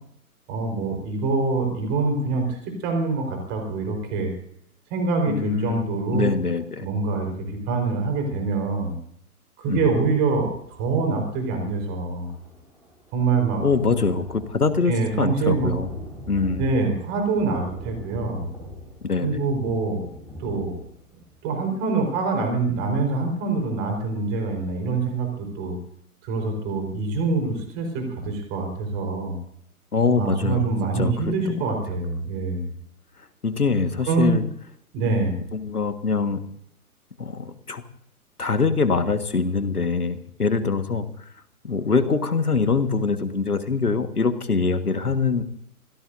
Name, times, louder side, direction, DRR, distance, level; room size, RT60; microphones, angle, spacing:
voice 1, 0.5-4.3 4.9-6.3 6.8-8.9 9.6-12.3 13.1-13.6 14.9-15.7 16.6-18.5 19.2-20.1 20.4-20.8 21.4-25.8 26.2-29.4 30.2-32.6 34.1-34.4 34.9-35.3, right 3 dB, 25° right, 4 dB, 4.5 m, -25 dB
voice 2, 5.3-5.8 6.1-6.9 9.7-9.9 13.6-15.9 16.3-16.6 19.0-19.4 29.9-31.6 33.4-34.4 35.5-36.4 37.2-37.8 38.4-41.1 41.6-45.4, left 4 dB, 75° left, 10 dB, 1.8 m, -24 dB
Thunder, 11.5-24.1 24.6-24.7 25.0-25.1, left 1 dB, 5° right, 4.6 m, -42 dB
25.5 x 17.0 x 2.7 m, 0.67 s
figure-of-eight pair, 125°, 45 cm